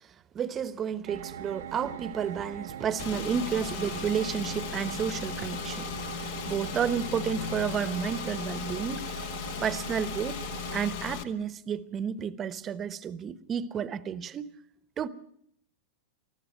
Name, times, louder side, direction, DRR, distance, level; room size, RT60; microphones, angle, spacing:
voice 1, 0.3-9.1 9.6-10.4 10.7-14.5 15.0-15.1, right 7 dB, 25° right, 1.0 m, -31 dB
sound 1, 1.1-10.8, right 9 dB, 90° right, 1.1 m, -41 dB
Car / Engine, 3.0-11.2, left 8 dB, 60° left, 1.6 m, -37 dB
21.0 x 14.0 x 9.2 m
supercardioid pair, 135°, 0 cm